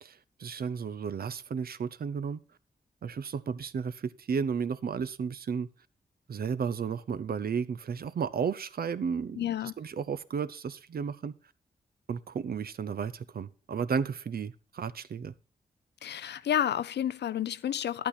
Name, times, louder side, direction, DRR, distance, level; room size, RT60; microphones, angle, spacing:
voice 1, 0.0-2.4 3.0-5.7 6.3-9.4 9.8-11.3 12.1-15.3, right 6 dB, 60° right, 0.6 m, -33 dB
voice 2, 9.4-9.7 16.0-18.1, left 10 dB, 75° left, 0.5 m, -30 dB
10.0 x 8.5 x 4.1 m
supercardioid pair, 40°, 18 cm